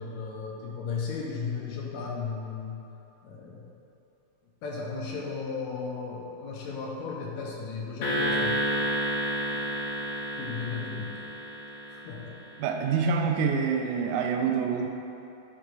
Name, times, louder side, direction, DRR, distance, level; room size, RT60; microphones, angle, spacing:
voice 1, 0.0-2.8 3.2-3.7 4.6-8.6 10.4-11.2 11.9-12.3, left 5 dB, 75° left, -3 dB, 2.1 m, -35 dB
sound 1, 8.0-12.5, equal, 55° left, 1.4 m, -30 dB
voice 2, 12.6-14.9, right 6 dB, 90° right, 2 dB, 2.0 m, -26 dB
10.0 x 3.7 x 4.7 m, 2.9 s
omnidirectional pair, 3.4 m